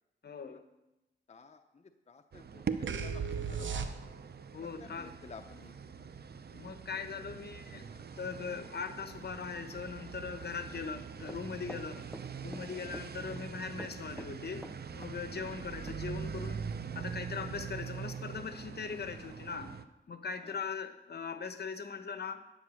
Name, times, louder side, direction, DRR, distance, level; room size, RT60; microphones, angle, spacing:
voice 1, 0.2-0.6 4.5-5.1 6.5-7.8 8.2-12.1 12.4-14.7 14.9-19.7 20.1-22.4, left 5 dB, 60° left, 9 dB, 1.0 m, -40 dB
voice 2, 1.3-2.6 2.9-3.9 4.8-5.7 12.8-13.0 20.4-20.6, left 5 dB, 35° left, 6 dB, 0.7 m, -53 dB
sound 1, 2.3-19.8, right 6 dB, 55° right, 0.6 m, -43 dB
sound 2, 2.9-4.4, right 6 dB, 85° right, 0.9 m, -36 dB
Run, 11.3-12.7 12.9-13.5 13.8-15.1 15.4-15.5 15.9-16.0, equal, ahead, 0.6 m, -46 dB
10.5 x 8.8 x 6.3 m, 0.97 s
wide cardioid pair, 80°, 19 cm